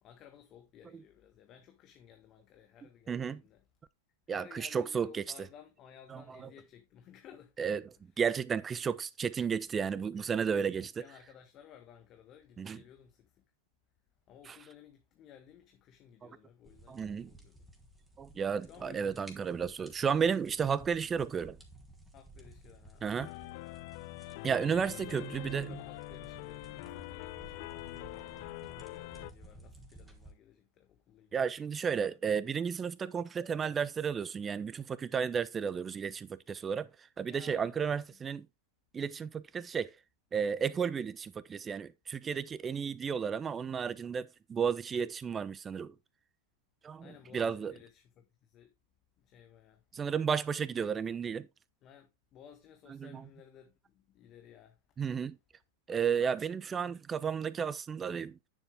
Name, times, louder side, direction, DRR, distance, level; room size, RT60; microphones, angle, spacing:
voice 1, 0.0-3.6 4.3-7.6 9.5-10.4 10.8-13.4 14.3-17.7 18.6-19.4 22.1-23.1 24.9-31.4 37.3-38.2 47.0-48.7 49.2-49.8 51.8-54.8, left 9 dB, 40° left, 1.6 m, -56 dB
voice 2, 3.1-3.4 4.3-5.2 6.1-6.5 7.6-7.9 8.2-11.0 12.6-12.8 14.5-14.6 16.2-16.3 16.9-17.3 18.2-21.6 23.0-23.3 24.4-25.8 31.3-36.9 37.2-38.5 38.9-39.9 40.3-45.9 46.8-47.7 49.9-51.5 52.9-53.3 55.0-55.4 55.9-58.4, right 6 dB, 25° right, 0.8 m, -33 dB
sound 1, 16.7-30.3, right 1 dB, 5° right, 3.3 m, -55 dB
sound 2, 23.2-29.3, left 20 dB, 55° left, 0.5 m, -44 dB
10.0 x 7.0 x 3.5 m
hypercardioid pair, 100°, 0 cm